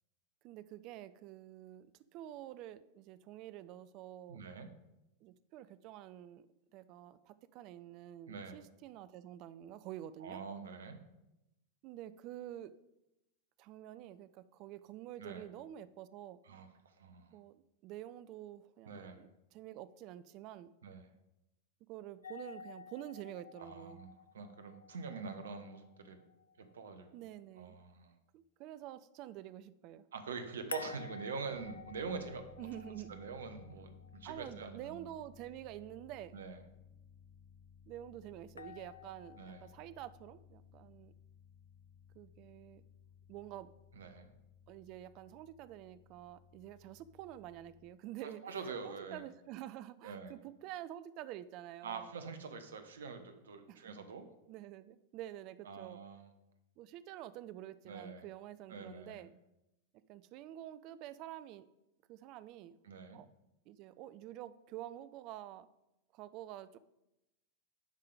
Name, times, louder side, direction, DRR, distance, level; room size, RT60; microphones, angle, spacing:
voice 1, 0.4-4.5 5.2-6.5 6.7-10.4 11.8-12.7 13.6-16.4 17.3-20.7 21.9-24.0 27.1-27.8 28.3-30.0 32.6-33.2 34.2-36.4 37.9-41.1 42.1-42.8 43.3-43.7 44.7-52.1 53.7-53.9 54.5-56.0 56.8-59.3 60.1-61.7 62.1-62.8 63.1-63.3 63.7-65.7 66.1-66.8, right 12 dB, 40° right, 15 dB, 0.4 m, -48 dB
voice 2, 4.3-4.7 8.3-8.6 10.2-11.0 15.2-15.5 16.4-17.4 18.9-19.2 20.8-21.1 23.6-24.1 24.3-26.2 26.6-27.1 27.6-28.2 30.1-32.5 33.1-35.0 36.3-36.6 39.4-39.7 43.9-44.3 48.2-49.2 50.0-50.3 51.8-54.2 55.6-56.3 57.8-58.2 58.7-59.3 62.8-63.2, right 5 dB, 65° right, 8 dB, 0.9 m, -45 dB
sound 1, 22.2-27.2 30.7-34.8 38.6-39.8, left 5 dB, 75° left, 0.3 m, -52 dB
sound 2, 31.5-47.9, left 7 dB, 20° left, 1.4 m, -60 dB
10.5 x 3.8 x 4.8 m, 0.91 s
figure-of-eight pair, 90°, 0 cm